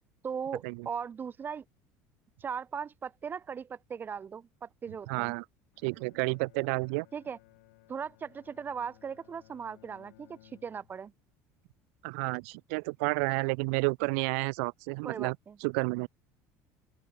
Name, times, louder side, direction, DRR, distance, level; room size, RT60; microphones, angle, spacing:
voice 1, 0.2-1.6 2.4-5.4 7.1-7.4 7.9-11.1 15.0-15.6, right 6 dB, 25° right, 0.5 m, -38 dB
voice 2, 5.1-5.4 5.8-7.1 12.0-15.4 15.6-16.1, right 33 dB, 80° right, 0.4 m, -30 dB
Bowed string instrument, 5.7-11.2, left 25 dB, 85° left, 3.9 m, -60 dB
open air
supercardioid pair, 110°, 7 cm